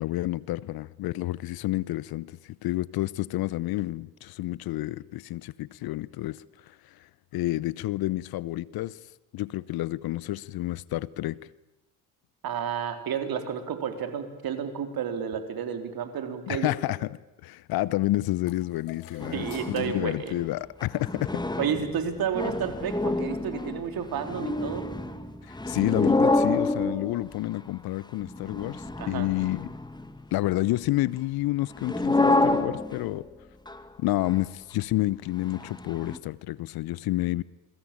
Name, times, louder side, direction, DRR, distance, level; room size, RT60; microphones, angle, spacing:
voice 1, 0.0-9.0 9.3-11.4 16.5-21.4 25.4-29.7 30.3-33.3 34.0-37.4, left 17 dB, 55° left, 0.9 m, -29 dB
voice 2, 12.4-16.7 19.3-20.4 21.6-24.9 29.0-29.3, right 8 dB, 50° right, 4.0 m, -31 dB
sound 1, 18.5-21.2, left 9 dB, 70° left, 4.5 m, -50 dB
sound 2, 19.2-20.0 20.4-20.5 20.8-27.6 28.2-30.2 31.8-33.2 33.7-33.8 34.3-34.4 35.5-36.2, left 2 dB, 10° left, 2.1 m, -28 dB
27.5 x 23.0 x 8.9 m
hypercardioid pair, 55°, 44 cm